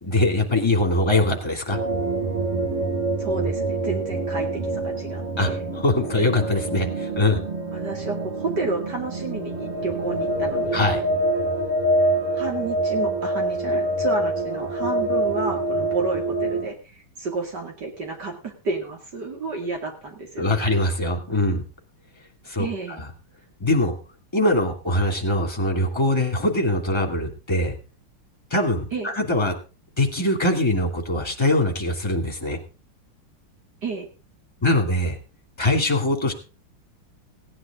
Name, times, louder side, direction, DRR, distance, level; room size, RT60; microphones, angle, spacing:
voice 1, 0.0-1.8 5.4-5.5 5.7-7.4 10.7-11.0 20.4-21.6 22.5-23.1 23.6-23.9 24.3-27.8 28.5-29.5 30.0-32.6 34.6-35.2 35.6-36.3, left 1 dB, 10° left, 3 dB, 2.4 m, -22 dB
sound 1, 1.7-16.7, right 1 dB, 85° right, 3.6 m, -26 dB
voice 2, 3.2-4.5 4.7-5.6 7.7-10.9 12.3-20.7 22.6-23.0 28.9-29.1 33.8-34.1, right 3 dB, 50° right, 2 dB, 2.9 m, -31 dB
17.0 x 9.9 x 3.7 m, 0.32 s
omnidirectional pair, 2.3 m